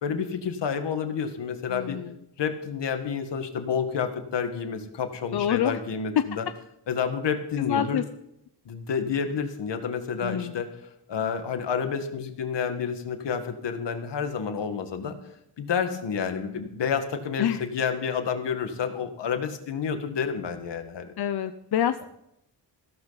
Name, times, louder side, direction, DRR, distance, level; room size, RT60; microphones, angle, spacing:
voice 1, 0.0-2.0 2.4-6.5 6.9-8.0 8.7-10.7 11.1-15.2 15.6-21.1, left 6 dB, 90° left, 7 dB, 1.8 m, -29 dB
voice 2, 1.7-2.2 5.3-5.8 6.2-6.3 7.6-8.0 10.2-10.6 17.4-17.6 21.2-22.0, left 10 dB, 65° left, 10 dB, 0.7 m, -26 dB
15.5 x 13.5 x 4.1 m, 0.78 s
wide cardioid pair, 95°, 41 cm